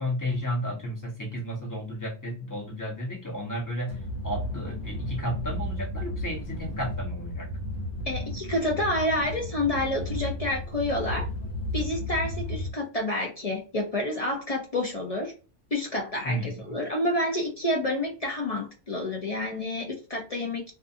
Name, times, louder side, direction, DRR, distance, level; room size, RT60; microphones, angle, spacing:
voice 1, 0.0-4.0 4.2-7.5 16.2-16.8, equal, 20° left, -2 dB, 0.9 m, -33 dB
sound 1, 3.9-12.7, left 1 dB, 60° left, 1.1 m, -33 dB
voice 2, 8.1-11.3 11.7-15.3 15.7-20.7, left 1 dB, 45° left, -1 dB, 0.5 m, -29 dB
2.5 x 2.4 x 2.5 m, 0.33 s
omnidirectional pair, 1.3 m